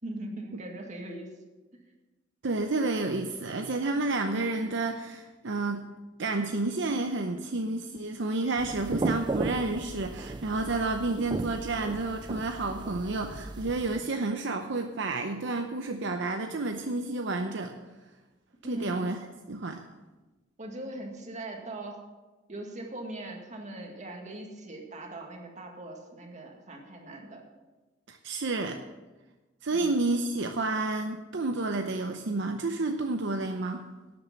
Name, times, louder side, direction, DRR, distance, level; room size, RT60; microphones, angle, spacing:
voice 1, 0.0-1.4 18.6-19.1 20.6-22.0 22.5-27.4 29.7-29.9, right 1 dB, 40° right, 1 dB, 2.0 m, -40 dB
voice 2, 2.4-5.9 6.2-17.7 18.7-19.2 19.5-19.8 28.1-28.8 29.6-33.9, right 2 dB, 65° right, 5 dB, 0.7 m, -30 dB
sound 1, 8.6-14.0, right 3 dB, 25° right, 0.3 m, -35 dB
12.0 x 8.5 x 6.1 m, 1.2 s
head